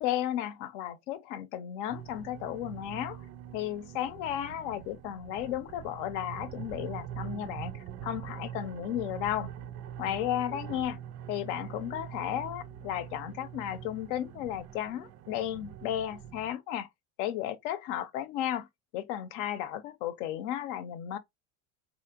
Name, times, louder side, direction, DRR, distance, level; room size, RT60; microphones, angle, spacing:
voice 1, 0.0-3.2 3.5-9.5 10.0-11.0 11.3-16.9 17.2-18.7 18.9-21.2, left 11 dB, 80° left, 0.8 m, -34 dB
sound 1, 1.9-16.5, right 10 dB, 45° right, 0.5 m, -43 dB
3.8 x 2.8 x 2.8 m
supercardioid pair, 110°, 36 cm